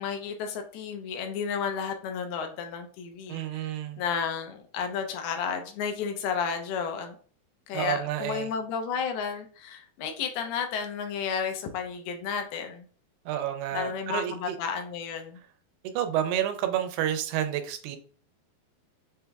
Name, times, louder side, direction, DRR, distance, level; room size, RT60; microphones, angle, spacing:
voice 1, 0.0-3.7 4.0-7.2 7.7-12.9 13.7-15.4, left 6 dB, 80° left, 5 dB, 2.6 m, -32 dB
voice 2, 3.3-4.0 7.7-8.5 13.3-14.6 15.9-18.0, right 11 dB, 85° right, 7 dB, 2.6 m, -30 dB
6.9 x 3.3 x 2.3 m, 0.44 s
omnidirectional pair, 4.6 m